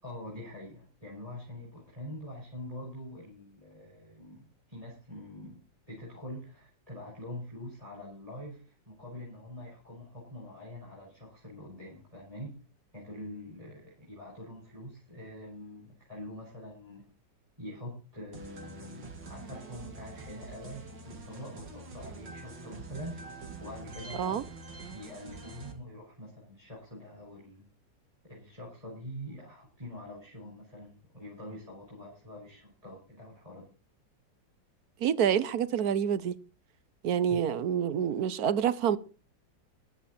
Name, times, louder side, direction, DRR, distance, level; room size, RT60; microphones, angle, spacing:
voice 1, 0.0-5.6 5.9-12.5 12.9-17.1 17.6-23.1 23.6-24.4 24.9-27.7 28.3-33.6 37.3-37.4, left 1 dB, 20° right, 6.9 m, -45 dB
sound 1, 18.3-25.7, right 3 dB, 75° right, 2.9 m, -45 dB
voice 2, 35.0-36.4 37.0-39.0, right 8 dB, 60° right, 1.4 m, -27 dB
15.5 x 11.5 x 4.3 m
omnidirectional pair, 2.0 m